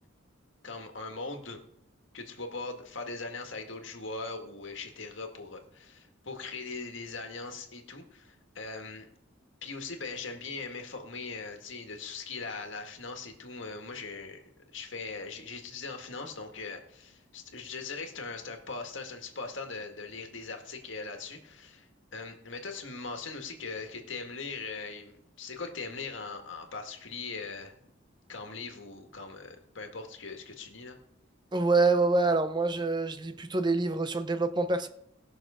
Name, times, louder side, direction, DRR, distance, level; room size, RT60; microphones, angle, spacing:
voice 1, 0.6-1.6 2.1-9.1 9.6-14.4 14.7-21.9 22.1-27.9 28.3-31.0, left 4 dB, 75° left, 1.8 m, -40 dB
voice 2, 31.5-34.9, right 3 dB, 25° right, 0.6 m, -26 dB
18.5 x 6.5 x 5.0 m
head